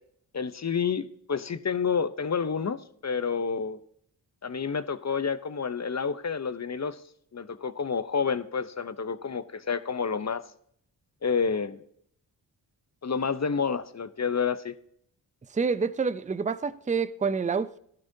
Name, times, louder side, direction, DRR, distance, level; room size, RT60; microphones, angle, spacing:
voice 1, 0.3-3.8 4.4-7.0 7.3-10.4 11.2-11.8 13.0-14.7, left 6 dB, 35° left, 0.7 m, -29 dB
voice 2, 15.5-17.8, right 5 dB, 15° right, 0.5 m, -28 dB
15.0 x 12.0 x 2.7 m
supercardioid pair, 40°, 45 cm